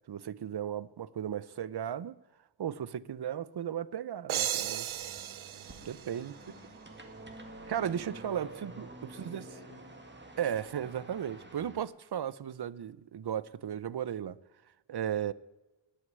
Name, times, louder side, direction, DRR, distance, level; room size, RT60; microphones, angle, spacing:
voice 1, 0.1-2.2 2.6-4.9 5.8-6.3 7.7-9.5 10.4-14.4 14.9-15.3, right 9 dB, 55° right, 0.7 m, -35 dB
sound 1, 4.3-7.0, right 11 dB, 90° right, 0.7 m, -36 dB
sound 2, 4.9-11.8, right 2 dB, 25° right, 2.0 m, -49 dB
voice 2, 6.2-6.7 8.1-8.2 9.1-9.8, left 2 dB, 25° left, 4.0 m, -55 dB
20.0 x 6.6 x 9.2 m
wide cardioid pair, 130°, 47 cm